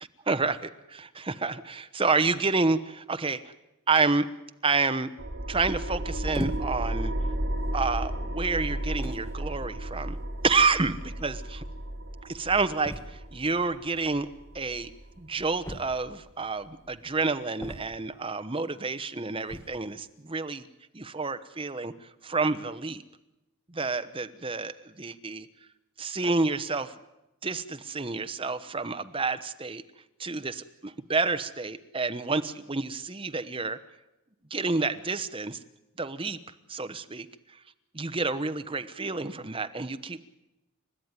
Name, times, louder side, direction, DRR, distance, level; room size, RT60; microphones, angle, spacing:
voice 1, 0.3-0.7 1.2-3.5 3.9-4.3 4.6-5.1 5.5-7.1 7.7-10.2 10.4-11.0 11.2-11.6 12.3-14.3 14.5-14.9 15.2-20.7 20.9-23.0 23.7-25.5 26.0-26.9 27.4-29.8 30.2-30.5 30.8-33.8 34.5-35.6 36.0-36.4 36.7-37.6 37.9-40.2, right 4 dB, 25° right, 10 dB, 1.0 m, -29 dB
sound 1, 5.2-16.2, right 1 dB, 60° right, 2.9 m, -34 dB
sound 2, 6.3-6.9 7.7-7.9 8.7-8.8 9.0-9.3 10.6-10.7 10.9-11.0 11.2-11.3 12.8-13.4 15.6-16.3 17.6-18.2 19.4-19.9, equal, 10° left, 1.3 m, -38 dB
30.0 x 14.0 x 9.7 m, 0.95 s
head